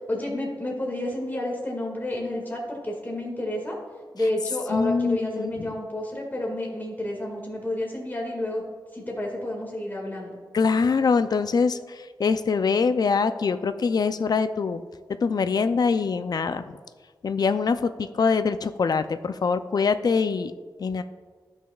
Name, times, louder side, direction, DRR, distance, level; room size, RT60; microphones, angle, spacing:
voice 1, 0.1-3.8 4.1-8.6 8.9-10.4, left 1 dB, 25° left, -1 dB, 1.9 m, -30 dB
voice 2, 4.7-5.7 10.5-14.8 15.2-16.6 17.2-20.5 20.8-21.0, left 5 dB, 60° left, 10 dB, 0.4 m, -24 dB
15.0 x 6.2 x 2.3 m, 1.5 s
cardioid pair, 65°, 8 cm